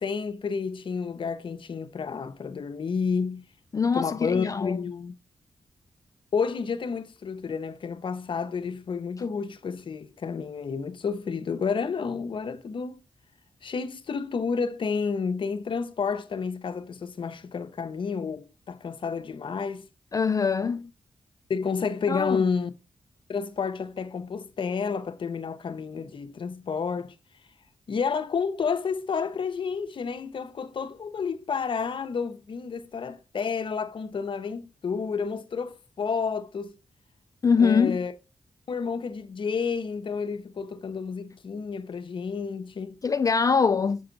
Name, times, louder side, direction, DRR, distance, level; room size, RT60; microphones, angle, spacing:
voice 1, 0.0-3.4 3.9-5.1 6.3-13.0 13.6-19.9 21.5-22.7 23.3-27.1 27.9-36.8 37.6-38.1 38.7-43.0, left 5 dB, 60° left, 0.8 m, -30 dB
voice 2, 3.7-4.8 20.1-20.9 22.1-22.4 37.4-38.0 43.0-44.0, left 5 dB, 40° left, 0.3 m, -23 dB
6.6 x 5.4 x 3.9 m
supercardioid pair, 45°, 9 cm